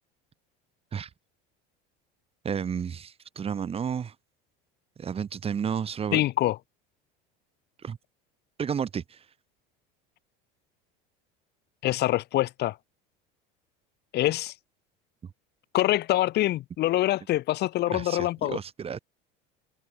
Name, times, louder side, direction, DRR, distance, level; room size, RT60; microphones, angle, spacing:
voice 1, 2.4-4.1 5.0-6.2 7.8-8.0 8.6-9.2 17.9-19.0, right 7 dB, 25° right, 4.1 m, -32 dB
voice 2, 6.1-6.6 11.8-12.8 14.1-14.5 15.7-18.6, left 15 dB, 50° left, 5.1 m, -25 dB
supercardioid pair, 130°, 21 cm